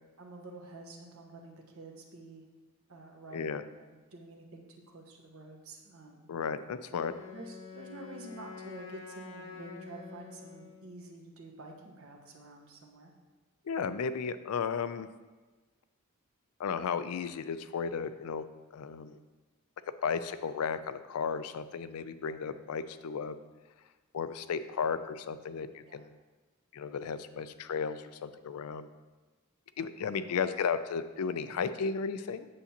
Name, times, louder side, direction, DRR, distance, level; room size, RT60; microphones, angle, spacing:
voice 1, 0.2-2.5 2.9-6.3 6.9-7.0 7.3-13.1 25.9-26.1, right 2 dB, 75° right, 1 dB, 1.1 m, -49 dB
voice 2, 3.3-3.6 6.3-7.1 13.7-15.1 16.6-18.4 18.7-19.2 20.0-23.4 24.1-26.1 26.7-28.9 29.8-32.5, left 6 dB, 90° left, 12 dB, 0.4 m, -34 dB
Wind instrument woodwind instrument, 7.0-10.9, left 5 dB, 70° left, 0.8 m, -47 dB
8.3 x 6.9 x 2.9 m, 1.3 s
head